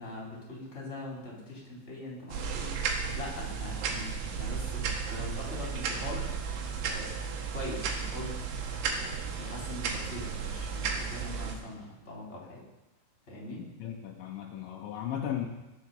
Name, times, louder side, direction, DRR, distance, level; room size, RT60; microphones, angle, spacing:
voice 1, 0.0-2.7 3.1-6.3 6.9-7.1 7.5-8.3 8.8-12.6 13.3-13.6, left 1 dB, 15° left, -4 dB, 3.8 m, -42 dB
sound 1, 2.3-11.6, right 6 dB, 80° right, 3.8 m, -34 dB
voice 2, 13.6-15.5, left 10 dB, 80° left, 0 dB, 3.2 m, -36 dB
20.5 x 7.1 x 5.6 m, 1.0 s
omnidirectional pair, 5.3 m